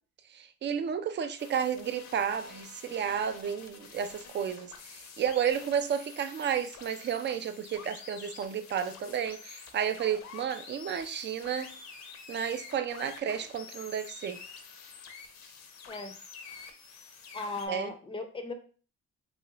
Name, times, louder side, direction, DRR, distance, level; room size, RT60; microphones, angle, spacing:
voice 1, 0.3-11.7 12.3-14.4 17.7-17.9, right 8 dB, 40° right, 0.4 m, -32 dB
sound 1, 1.4-17.7, left 6 dB, 65° left, 0.7 m, -48 dB
voice 2, 17.3-18.5, left 2 dB, 20° left, 0.5 m, -37 dB
3.0 x 2.4 x 2.9 m
cardioid pair, 90°, 30 cm